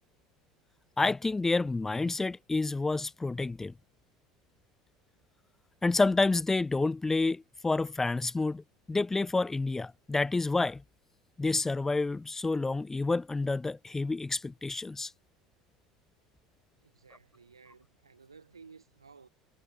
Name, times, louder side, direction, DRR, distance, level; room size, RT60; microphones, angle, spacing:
voice 1, 1.0-3.7 5.8-10.8 11.4-15.1, left 3 dB, 15° left, 0.7 m, -29 dB
voice 2, 16.8-19.3, right 5 dB, 90° right, 4.1 m, -55 dB
figure-of-eight pair, 70°, 3 cm